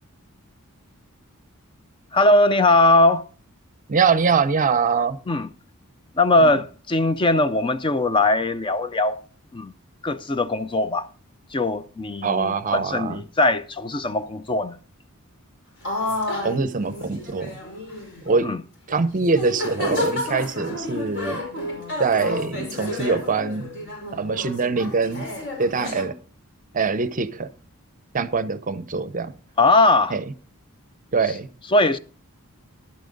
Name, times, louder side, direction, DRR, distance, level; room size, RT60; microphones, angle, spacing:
voice 1, 2.1-3.2 5.3-5.5 6.2-9.2 9.5-9.7 10.0-11.1 11.5-14.8 18.4-18.6 29.6-30.2 31.3-31.4 31.7-32.0, left 2 dB, 20° left, 0.4 m, -20 dB
voice 2, 3.9-5.2 6.4-6.6 12.2-13.2 16.4-17.6 18.3-18.5 18.9-21.4 22.0-23.7 24.1-25.3 25.6-26.2 26.7-27.5 28.1-29.3 30.1-30.2 31.1-31.5, right 4 dB, 35° right, 0.6 m, -23 dB
sound 1, 15.8-18.4 18.9-19.0 19.3-26.0, left 1 dB, 55° left, 4.9 m, -31 dB
11.5 x 8.8 x 3.9 m
head